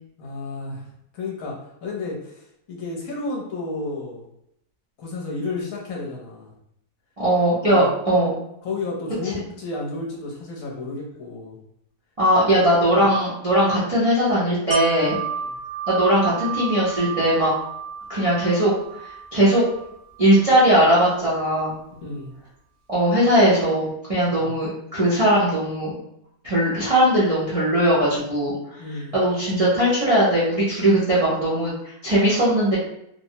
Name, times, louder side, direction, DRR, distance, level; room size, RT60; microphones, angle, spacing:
voice 1, 0.2-0.9 1.1-4.3 5.0-6.5 7.6-7.9 8.6-11.6 12.9-13.1 15.5-15.6 21.9-22.3 24.3-24.6 28.8-29.1, left 3 dB, 65° left, -2 dB, 1.0 m, -32 dB
voice 2, 7.2-8.4 12.2-15.2 15.9-17.5 18.1-18.7 19.3-19.6 20.2-21.8 22.9-26.0 26.4-28.5 29.1-32.8, right 1 dB, 35° right, -9 dB, 0.5 m, -19 dB
Wind chime, 14.7-20.5 20.9-21.0, right 6 dB, 65° right, 1.0 m, -32 dB
3.1 x 2.0 x 2.7 m, 0.78 s
omnidirectional pair, 1.7 m